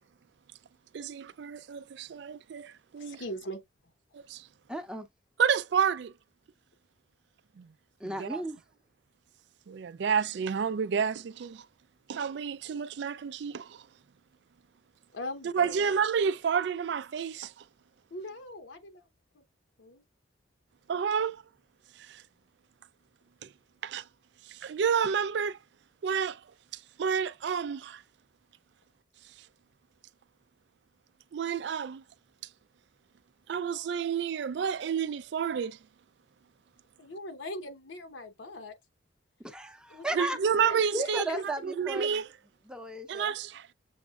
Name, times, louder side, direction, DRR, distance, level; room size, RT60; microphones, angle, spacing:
voice 1, 0.9-3.2 4.1-4.4 5.4-6.1 7.6-7.7 8.0-8.4 9.7-11.6 12.1-13.8 15.4-17.5 20.9-21.4 22.1-22.2 23.4-23.5 23.8-24.0 24.5-25.6 26.0-26.4 27.0-28.0 31.3-32.0 33.5-35.8 40.1-42.3 43.1-43.7, right 7 dB, 65° right, 0.3 m, -30 dB
voice 2, 3.0-3.6 15.1-16.0 18.1-19.1 19.3-19.4 19.8-20.0 37.0-38.7 39.9-41.4, left 1 dB, 75° left, 0.9 m, -41 dB
voice 3, 4.7-5.1 8.0-8.6 39.4-40.4 40.9-42.2 42.7-43.3, right 1 dB, 5° right, 0.6 m, -35 dB
7.0 x 3.1 x 2.4 m
head